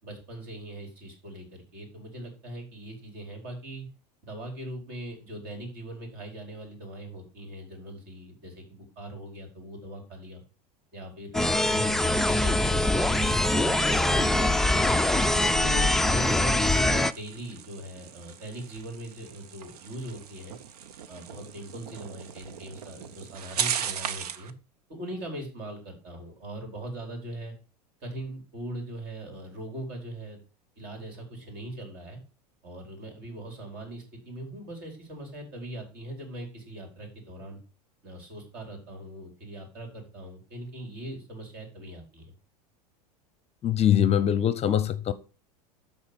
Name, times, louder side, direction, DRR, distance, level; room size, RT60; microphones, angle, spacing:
voice 1, 0.0-3.9 4.2-10.4 10.9-15.0 15.4-20.6 21.1-24.5 24.9-27.5 28.0-30.4 30.8-32.2 32.6-37.6 38.0-42.3, right 1 dB, 50° right, 4.7 m, -40 dB
sound 1, 11.3-17.1, left 1 dB, ahead, 0.4 m, -23 dB
sound 2, 13.8-24.5, right 8 dB, 70° right, 0.8 m, -38 dB
voice 2, 43.6-45.1, left 10 dB, 30° left, 0.7 m, -23 dB
12.5 x 4.3 x 5.2 m
hypercardioid pair, 85°, 20 cm